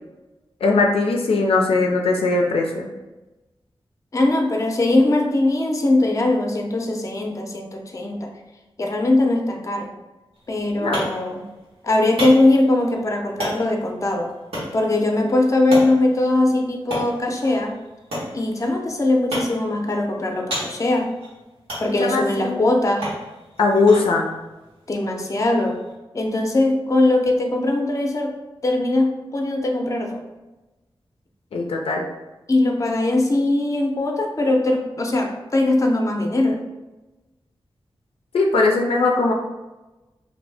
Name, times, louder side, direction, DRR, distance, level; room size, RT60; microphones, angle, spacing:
voice 1, 0.6-2.9 10.8-11.0 22.0-22.7 23.6-24.3 31.5-32.0 38.3-39.3, left 3 dB, 90° left, 1 dB, 0.4 m, -19 dB
voice 2, 4.1-8.3 8.8-9.9 10.5-11.4 11.8-14.3 14.7-17.8 18.3-21.1 21.8-23.1 24.9-25.8 26.1-28.3 28.6-30.2 32.5-36.6, left 2 dB, 35° left, 2 dB, 0.5 m, -20 dB
sound 1, 10.3-25.9, equal, 90° right, 1.2 m, -35 dB
2.6 x 2.6 x 3.3 m, 1.1 s
wide cardioid pair, 65°, 10 cm